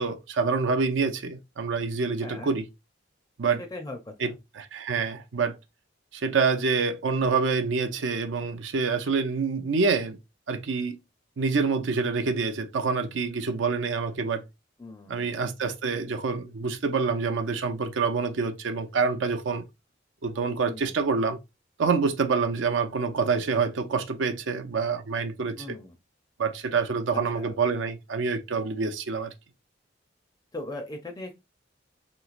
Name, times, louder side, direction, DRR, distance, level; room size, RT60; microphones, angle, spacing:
voice 1, 0.0-2.7 3.4-3.6 4.2-5.6 6.1-10.2 10.5-11.0 11.4-14.4 15.1-19.6 20.2-21.4 21.8-25.8 26.4-29.3, right 4 dB, 75° right, 0.5 m, -27 dB
voice 2, 2.2-2.5 3.7-4.3 14.8-15.3 20.7-20.9 25.6-25.9 27.1-27.5 30.5-31.4, left 2 dB, 20° left, 0.4 m, -39 dB
3.1 x 3.0 x 2.4 m
head